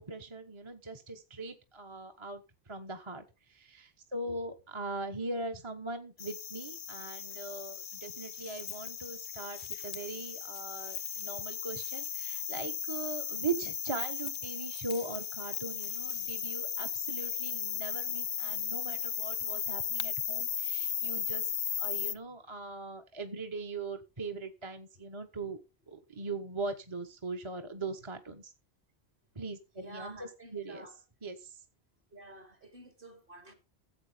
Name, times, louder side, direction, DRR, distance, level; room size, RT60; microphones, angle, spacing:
voice 1, 0.0-21.5 21.8-25.6 25.9-28.5 29.3-30.9 31.2-31.6, right 3 dB, 25° right, 1.2 m, -40 dB
sound 1, 6.2-22.2, left 8 dB, 65° left, 1.0 m, -36 dB
voice 2, 29.7-31.0 32.1-33.5, right 1 dB, 55° right, 3.4 m, -50 dB
14.0 x 8.2 x 5.0 m
omnidirectional pair, 1.1 m